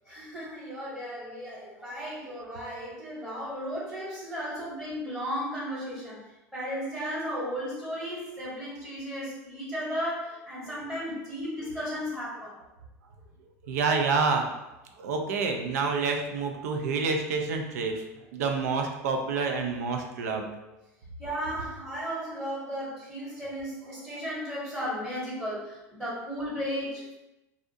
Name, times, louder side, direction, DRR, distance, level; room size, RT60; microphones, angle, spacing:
voice 1, 0.1-6.2 6.5-12.6 21.2-27.2, equal, 15° right, -8 dB, 1.0 m, -35 dB
voice 2, 13.6-14.5 15.0-18.0 18.3-20.7, right 4 dB, 75° right, 4 dB, 0.4 m, -28 dB
2.5 x 2.0 x 2.6 m, 0.97 s
hypercardioid pair, 75°, 8 cm